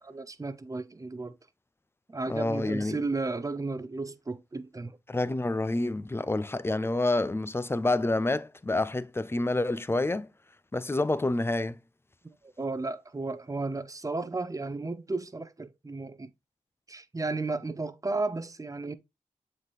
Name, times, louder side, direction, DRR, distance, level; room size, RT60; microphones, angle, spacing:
voice 1, 0.0-1.3 2.1-5.0 12.2-16.3 16.9-18.9, right 3 dB, 25° right, 0.7 m, -34 dB
voice 2, 2.3-3.0 5.1-10.3 10.7-11.8, left 2 dB, 15° left, 0.5 m, -28 dB
7.3 x 4.1 x 3.2 m
cardioid pair, 65°, 14 cm